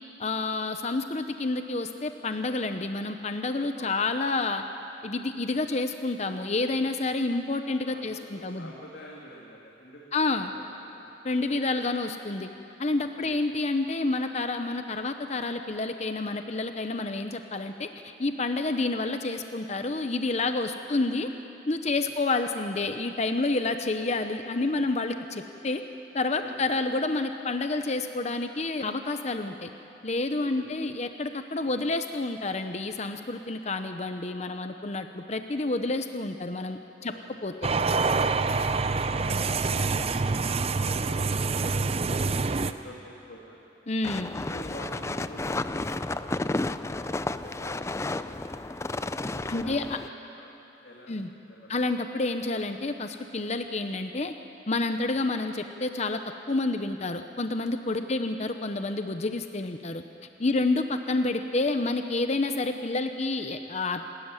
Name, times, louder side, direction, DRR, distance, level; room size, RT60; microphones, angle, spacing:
voice 1, 0.2-4.6 5.0-8.7 10.1-10.5 11.2-12.5 12.8-21.3 21.7-25.8 26.1-29.7 30.0-37.1 37.4-37.7 43.9-44.3 49.5-50.0 51.1-51.3 51.7-54.3 54.7-56.2 56.5-60.0 60.4-64.1, left 2 dB, 40° left, 7 dB, 0.8 m, -29 dB
voice 2, 3.7-4.3 6.7-6.9 7.9-8.1 8.4-11.0 13.1-13.3 20.7-21.2 21.9-22.1 26.4-26.8 30.4-31.1 31.6-31.8 37.0-37.5 39.2-39.9 40.3-43.7 44.3-48.9 49.3-50.5 50.8-51.2 51.5-51.7 55.0-55.2 57.9-58.3 60.4-60.6, equal, 65° left, -3 dB, 2.6 m, -48 dB
sound 1, 37.6-42.7, right 4 dB, 35° right, 0.6 m, -26 dB
sound 2, 44.0-50.1, left 2 dB, 15° left, 0.4 m, -32 dB
28.0 x 13.0 x 9.8 m, 2.8 s
head